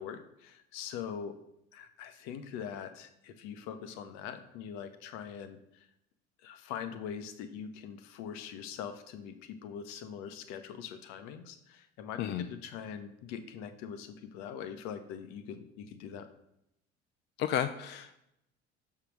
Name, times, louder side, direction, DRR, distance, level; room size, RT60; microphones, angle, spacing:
voice 1, 0.0-1.3 1.7-5.9 6.4-16.3, left 8 dB, 55° left, 9 dB, 0.8 m, -42 dB
voice 2, 17.4-18.2, left 10 dB, 35° left, 9 dB, 0.4 m, -32 dB
6.5 x 3.7 x 6.1 m, 0.81 s
figure-of-eight pair, 55°, 33 cm